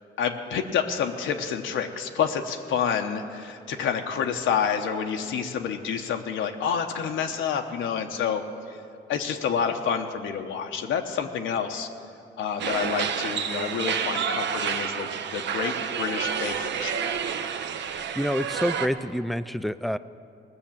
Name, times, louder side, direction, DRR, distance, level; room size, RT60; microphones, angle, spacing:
voice 1, 0.2-8.8 9.1-11.9 12.4-17.1, left 7 dB, 80° left, 4 dB, 0.9 m, -28 dB
sound 1, 12.6-18.9, right 7 dB, 65° right, 0.8 m, -29 dB
voice 2, 18.2-20.0, equal, ahead, 14 dB, 0.3 m, -27 dB
19.0 x 6.5 x 7.2 m, 2.5 s
cardioid pair, 90°, 20 cm